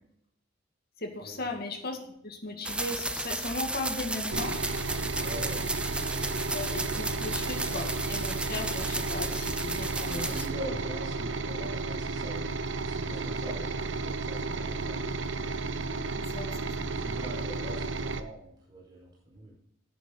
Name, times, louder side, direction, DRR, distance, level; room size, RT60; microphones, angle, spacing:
voice 1, 1.0-2.0 2.2-4.6 6.5-10.4 16.2-16.5 16.8-16.9, left 2 dB, 50° left, 3 dB, 2.3 m, -37 dB
sound 1, 2.6-10.5, right 2 dB, 5° right, 0.6 m, -34 dB
sound 2, 4.3-18.2, right 3 dB, 65° right, 0.9 m, -33 dB
voice 2, 5.2-5.7 10.1-15.5 16.9-19.6, right 1 dB, 20° right, -4 dB, 4.7 m, -43 dB
10.5 x 10.0 x 4.0 m, 0.71 s
head